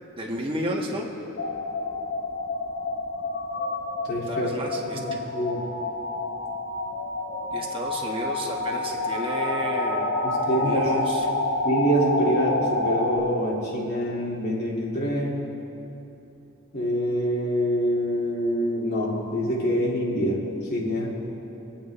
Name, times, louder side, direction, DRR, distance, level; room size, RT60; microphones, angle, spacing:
voice 1, 0.2-1.1 4.3-5.0 7.4-11.2, equal, 25° right, -1 dB, 1.6 m, -32 dB
sound 1, 1.4-13.2, left 2 dB, 75° left, 1.6 m, -28 dB
voice 2, 4.0-4.5 4.9-5.6 10.2-11.1 11.6-15.5 16.7-20.4 20.7-21.1, equal, 50° left, -5 dB, 2.3 m, -25 dB
25.5 x 8.9 x 3.3 m, 2.9 s
head